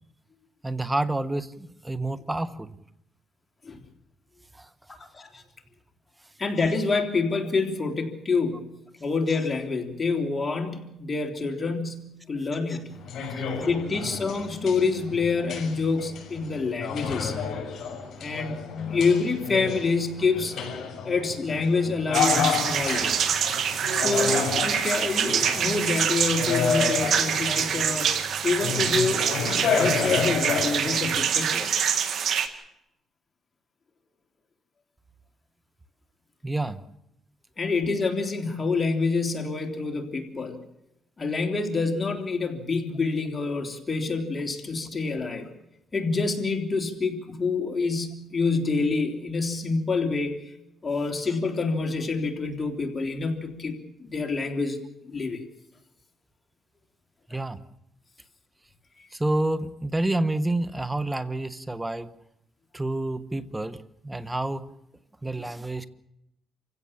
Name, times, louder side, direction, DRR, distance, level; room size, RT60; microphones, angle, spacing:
voice 1, 0.6-2.8 4.5-4.7 13.3-13.5 13.8-14.0 36.4-36.8 57.3-57.6 59.1-62.1 62.7-64.7 65.2-65.9, right 2 dB, 15° right, 14 dB, 1.3 m, -29 dB
voice 2, 5.0-5.4 6.4-13.0 13.6-17.3 18.2-20.6 21.0-23.2 23.9-28.1 28.4-29.3 29.7-31.7 37.6-40.6 41.2-45.5 45.9-50.4 50.8-54.8 55.0-55.4, left 4 dB, 30° left, 4 dB, 3.3 m, -27 dB
sound 1, 12.9-31.3, left 6 dB, 60° left, 6.5 m, -30 dB
sound 2, 22.1-32.5, right 8 dB, 65° right, 2.1 m, -26 dB
28.0 x 16.5 x 7.3 m, 0.84 s
cardioid pair, 90°, 0 cm